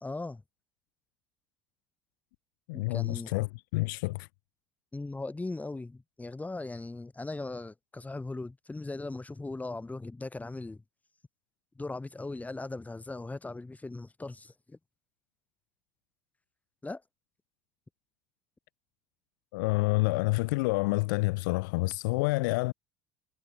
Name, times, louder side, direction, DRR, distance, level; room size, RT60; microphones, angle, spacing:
voice 1, 0.0-0.4 2.7-3.3 4.9-10.8 11.8-14.8 16.8-17.0, left 2 dB, 15° left, 3.7 m, -39 dB
voice 2, 2.7-3.5 3.7-4.3 19.5-22.7, left 24 dB, 65° left, 0.5 m, -28 dB
figure-of-eight pair, 65°, 11 cm